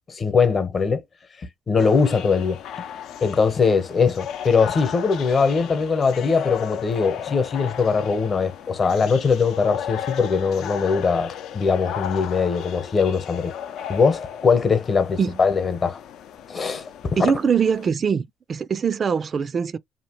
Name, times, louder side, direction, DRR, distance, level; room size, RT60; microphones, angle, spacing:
voice 1, 0.1-1.0 1.7-2.9 3.2-13.5 13.9-16.0 16.5-16.9, left 5 dB, 40° left, 0.9 m, -21 dB
sound 1, 1.8-17.9, left 9 dB, 70° left, 0.6 m, -35 dB
voice 2, 17.2-19.8, right 6 dB, 45° right, 0.3 m, -22 dB
2.8 x 2.4 x 3.0 m
supercardioid pair, 75°, 0 cm